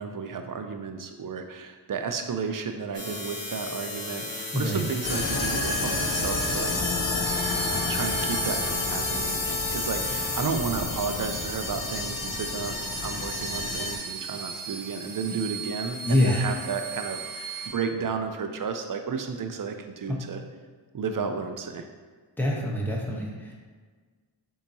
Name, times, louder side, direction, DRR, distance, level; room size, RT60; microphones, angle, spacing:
voice 1, 0.0-6.8 7.9-20.4 20.9-21.9, right 5 dB, 45° right, 6 dB, 0.4 m, -32 dB
sound 1, 2.9-10.4, left 2 dB, 65° left, 1.5 m, -35 dB
santa on acid, 5.0-14.0, left 3 dB, 45° left, 0.6 m, -29 dB
sound 2, 7.2-17.7, right 6 dB, 80° right, 1.0 m, -38 dB
voice 2, 16.0-16.5 20.1-20.2 22.4-23.5, left 1 dB, 5° left, -3 dB, 0.9 m, -25 dB
6.8 x 2.9 x 2.7 m, 1.5 s
wide cardioid pair, 80°, 46 cm